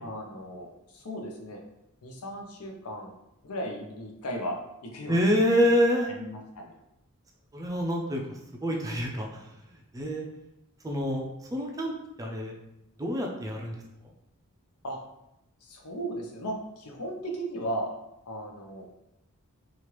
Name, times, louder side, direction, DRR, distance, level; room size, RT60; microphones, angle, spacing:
voice 1, 0.0-1.6 2.0-3.1 3.4-4.6 4.8-5.2 6.1-6.7 14.8-15.0 15.6-18.0 18.3-18.9, equal, 85° left, 1 dB, 0.6 m, -36 dB
voice 2, 5.1-6.1 7.5-8.2 8.6-9.5 9.9-10.2 10.8-11.3 11.5-11.9 12.2-12.5 13.0-13.8, equal, 15° right, 0 dB, 0.4 m, -26 dB
3.0 x 2.4 x 3.0 m, 0.86 s
head